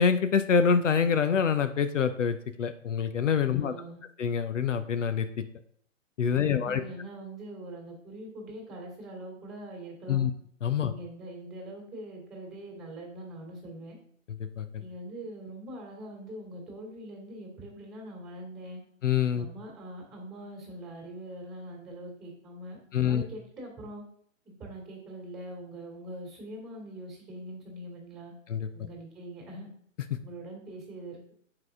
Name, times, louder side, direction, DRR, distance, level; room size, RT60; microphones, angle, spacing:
voice 1, 0.0-3.7 4.2-5.3 6.2-6.8 10.1-10.3 10.6-10.9 14.6-14.7 19.0-19.5 22.9-23.2 28.5-28.6, left 7 dB, 70° left, 10 dB, 0.7 m, -25 dB
voice 2, 3.5-4.0 6.3-10.3 10.8-14.0 14.8-18.8 19.3-24.0 24.4-28.3 28.7-29.7 30.2-31.3, right 1 dB, 10° right, -2 dB, 2.1 m, -43 dB
7.5 x 4.9 x 3.6 m, 0.62 s
figure-of-eight pair, 130°, 39 cm